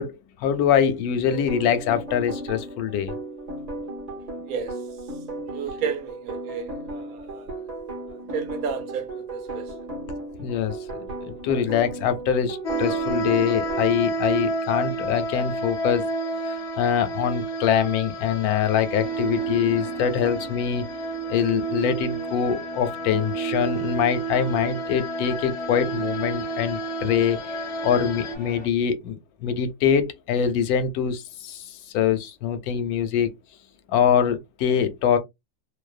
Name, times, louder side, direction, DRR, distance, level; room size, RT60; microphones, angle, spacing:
voice 1, 0.0-3.1 10.4-11.1 11.4-16.0 16.5-20.9 21.3-33.3 33.9-35.2, left 8 dB, 85° left, 1.1 m, -24 dB
sound 1, 1.3-13.8, right 2 dB, 40° right, 0.7 m, -35 dB
voice 2, 4.4-4.8 5.5-7.6 8.1-9.7, right 6 dB, 80° right, 1.0 m, -32 dB
sound 2, 12.6-28.3, right 3 dB, 65° left, 0.7 m, -30 dB
sound 3, 19.0-28.7, left 2 dB, 30° left, 0.6 m, -42 dB
2.7 x 2.1 x 2.4 m
omnidirectional pair, 1.5 m